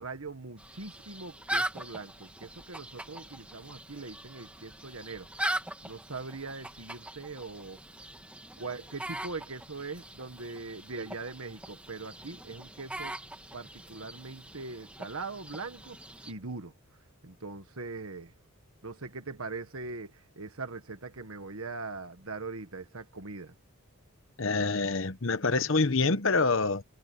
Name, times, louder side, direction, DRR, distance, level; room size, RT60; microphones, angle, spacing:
voice 1, 0.0-5.3 5.8-7.8 8.6-13.2 13.5-16.0 16.2-16.7 17.2-18.3 18.8-23.5, right 3 dB, 70° right, 1.5 m, -41 dB
sound 1, 0.6-16.3, right 1 dB, 5° right, 1.7 m, -41 dB
voice 2, 24.4-26.8, left 3 dB, 60° left, 1.0 m, -26 dB
head